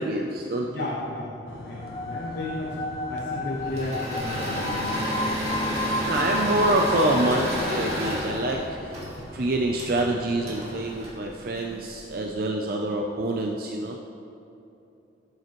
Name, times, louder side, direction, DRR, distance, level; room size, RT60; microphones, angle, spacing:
voice 1, 0.0-0.9 5.8-9.0 9.3-14.0, right 1 dB, 50° right, 1 dB, 0.5 m, -26 dB
voice 2, 0.6-5.1, left 2 dB, 65° left, -4 dB, 1.1 m, -34 dB
sound 1, 1.5-11.0, left 1 dB, 85° left, 0.9 m, -43 dB
sound 2, 1.8-8.6, left 2 dB, 25° left, 0.4 m, -32 dB
Engine / Mechanisms, 3.6-12.0, equal, 35° right, 2.1 m, -31 dB
12.0 x 7.7 x 3.1 m, 2.8 s
head